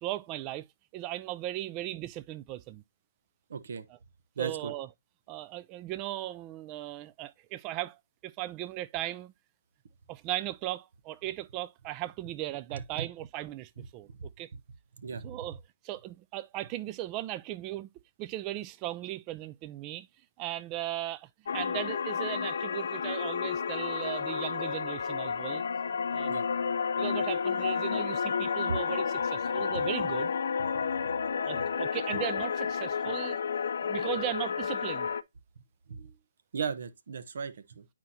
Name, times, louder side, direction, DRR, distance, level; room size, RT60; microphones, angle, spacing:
voice 1, 0.0-0.7 0.9-2.8 3.9-4.0 4.4-4.9 5.3-8.0 8.2-9.3 10.1-14.1 14.4-14.5 15.2-17.9 18.2-20.1 20.4-25.6 26.1-26.4 27.0-30.3 31.5-33.4 33.8-35.1, right 15 dB, 25° right, 0.4 m, -37 dB
voice 2, 3.5-3.8 4.4-4.7 12.7-13.1 14.1-14.2 15.0-15.3 26.3-26.5 31.5-31.6 35.9-36.1 36.5-37.8, right 6 dB, 60° right, 0.9 m, -37 dB
sound 1, 21.5-35.2, left 6 dB, 65° left, 0.5 m, -31 dB
9.5 x 4.5 x 2.7 m
hypercardioid pair, 145°, 0 cm